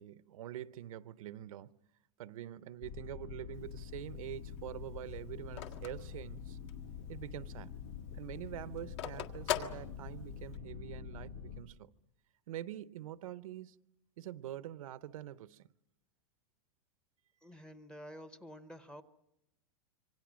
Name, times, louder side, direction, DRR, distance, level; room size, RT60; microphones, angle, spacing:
voice 1, 0.0-1.8 2.2-6.6 7.1-7.7 8.1-11.9 12.5-13.8 14.2-15.7, right 12 dB, 85° right, 0.8 m, -45 dB
sound 1, 2.8-11.6, left 7 dB, 85° left, 3.3 m, -46 dB
Telephone, 3.5-7.0 7.4-7.5 7.7-10.6, left 11 dB, 55° left, 1.7 m, -41 dB
voice 2, 17.4-19.0, equal, 5° left, 0.8 m, -50 dB
26.5 x 25.0 x 6.2 m
supercardioid pair, 165°, 17 cm